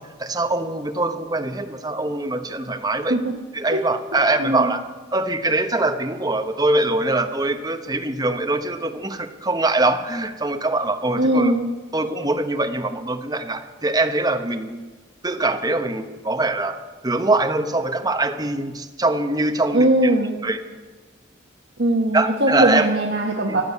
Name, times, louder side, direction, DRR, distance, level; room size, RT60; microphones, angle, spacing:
voice 1, 0.0-3.2 3.5-4.8 5.1-11.5 11.9-14.9 15.2-16.8 17.0-19.9 20.4-20.6 22.1-22.9 23.5-23.6, right 2 dB, 20° right, 6 dB, 1.0 m, -23 dB
voice 2, 4.1-4.8 11.2-11.7 19.7-20.4 21.8-23.6, right 1 dB, 60° right, 0 dB, 1.4 m, -20 dB
15.0 x 11.0 x 8.3 m, 1.3 s
head